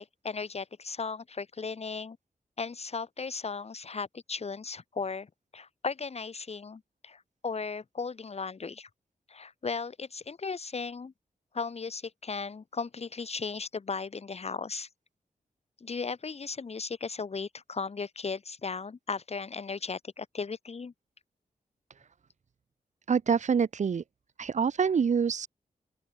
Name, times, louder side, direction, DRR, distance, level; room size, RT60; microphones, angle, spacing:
voice 1, 0.0-2.2 2.6-8.9 9.3-11.1 11.5-14.9 15.8-20.9, left 4 dB, 45° left, 2.1 m, -36 dB
voice 2, 23.1-24.0 24.4-25.5, right 6 dB, 55° right, 0.9 m, -26 dB
open air
wide cardioid pair, 105°, 14 cm